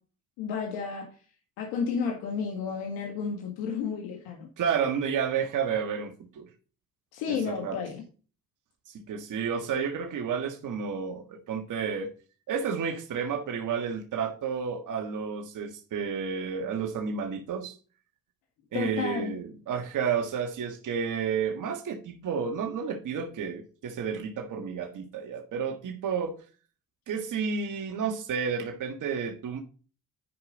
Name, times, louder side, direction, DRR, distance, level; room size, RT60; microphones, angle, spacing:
voice 1, 0.4-1.1 1.6-4.5 7.1-8.0 18.7-19.3, left 6 dB, 85° left, 1.9 m, -32 dB
voice 2, 4.6-6.5 7.3-7.8 8.8-12.1 12.5-17.7 18.7-26.4 27.1-29.6, right 6 dB, 60° right, 1.7 m, -31 dB
10.5 x 5.1 x 3.9 m
supercardioid pair, 75°, 35 cm